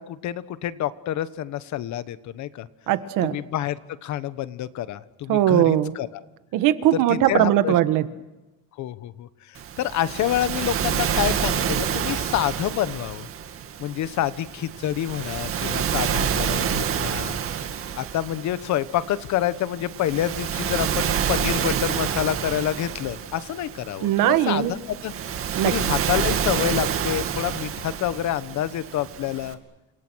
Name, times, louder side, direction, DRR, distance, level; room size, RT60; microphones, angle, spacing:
voice 1, 0.0-2.7 3.2-6.2 6.9-7.7 8.8-13.3 13.8-17.4 18.0-25.1 25.6-29.6, left 12 dB, 60° left, 14 dB, 1.3 m, -28 dB
voice 2, 2.9-3.4 5.3-5.9 6.5-8.1 24.0-24.7 25.5-25.7, right 12 dB, 75° right, 11 dB, 1.7 m, -20 dB
Waves surf, 9.6-29.5, right 8 dB, 45° right, 2.2 m, -28 dB
29.0 x 26.5 x 6.4 m, 1.0 s
cardioid pair, 180°, 32 cm